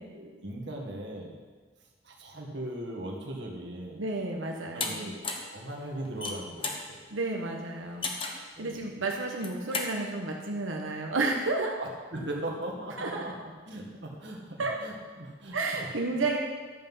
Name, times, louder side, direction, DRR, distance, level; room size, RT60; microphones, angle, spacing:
voice 1, 0.0-1.4 2.0-4.1 4.7-5.2 5.5-7.1 8.6-8.9 11.8-15.6 16.1-16.2, right 1 dB, 60° right, -1 dB, 1.8 m, -39 dB
voice 2, 4.0-5.1 7.1-8.1 8.6-11.8 13.0-13.2 14.6-14.8 15.5-16.4, right 3 dB, 85° right, 0 dB, 1.2 m, -31 dB
sound 1, 4.8-4.9 5.2-5.5 6.1-6.8 8.0-8.5 9.3-9.9, left 4 dB, 25° left, 1.0 m, -33 dB
11.5 x 7.8 x 5.6 m, 1.4 s
head